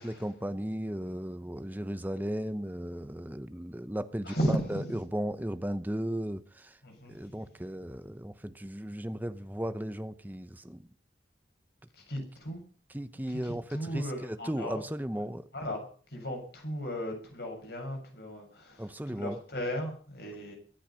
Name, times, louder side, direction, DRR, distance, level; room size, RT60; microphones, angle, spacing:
voice 1, 0.0-6.8 7.1-10.9 12.9-15.5 18.8-19.4, equal, 10° right, 0.8 m, -36 dB
voice 2, 4.3-4.9 6.8-7.3 12.1-12.6 13.3-14.8 15.5-15.8 16.1-20.5, equal, 60° left, 7.0 m, -35 dB
23.0 x 9.2 x 5.7 m
head